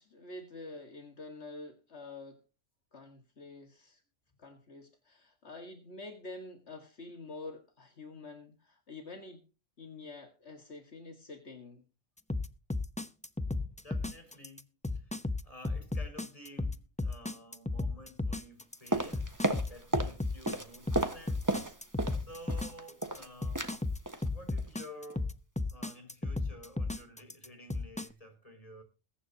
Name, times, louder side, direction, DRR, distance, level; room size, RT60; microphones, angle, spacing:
voice 1, 0.0-2.4 2.9-4.0 4.4-9.4 9.8-11.8, left 2 dB, 70° left, 2.1 m, -47 dB
sound 1, 12.3-28.1, left 2 dB, 5° left, 0.7 m, -34 dB
voice 2, 13.4-19.3 19.6-21.5 22.1-23.8 24.3-25.4 25.7-28.8, left 1 dB, 30° left, 5.8 m, -52 dB
sound 2, 18.9-20.2 20.4-22.2 22.5-23.3 23.6-23.8 24.1-24.3 24.6-24.8 25.1-25.2, right 2 dB, 15° right, 1.6 m, -33 dB
21.5 x 9.9 x 2.9 m
omnidirectional pair, 1.2 m